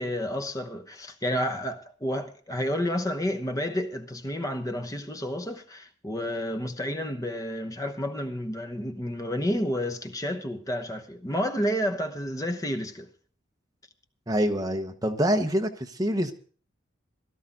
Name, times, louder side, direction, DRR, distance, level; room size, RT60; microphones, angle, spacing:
voice 1, 0.0-13.1, equal, 15° left, 0.9 m, -30 dB
voice 2, 14.3-16.3, equal, 20° right, 1.0 m, -26 dB
17.0 x 13.0 x 3.8 m
head